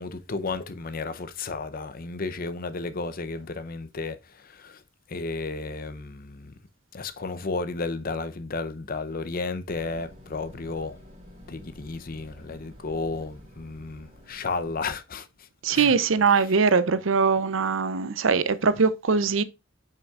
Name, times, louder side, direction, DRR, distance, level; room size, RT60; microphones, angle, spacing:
voice 1, 0.0-4.8 5.1-6.5 6.9-11.0 11.5-16.0, left 3 dB, 45° left, 0.7 m, -33 dB
sound 1, 9.7-14.9, equal, 40° right, 3.0 m, -50 dB
voice 2, 15.6-19.4, right 5 dB, 75° right, 0.6 m, -22 dB
8.0 x 5.7 x 2.4 m
head